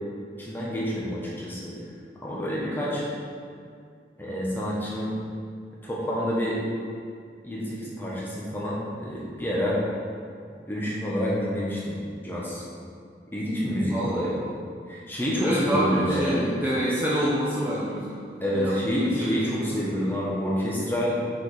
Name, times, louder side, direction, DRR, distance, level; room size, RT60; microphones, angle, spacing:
voice 1, 0.4-1.7 2.2-3.0 4.2-5.1 5.8-6.6 7.4-9.8 10.7-12.0 12.2-12.6 13.3-14.3 14.9-16.4 18.4-21.2, equal, 10° left, -6 dB, 1.1 m, -28 dB
voice 2, 13.9-14.4 15.4-18.2 18.5-19.8, equal, 10° right, -8 dB, 0.8 m, -27 dB
6.1 x 4.6 x 4.9 m, 2.2 s
head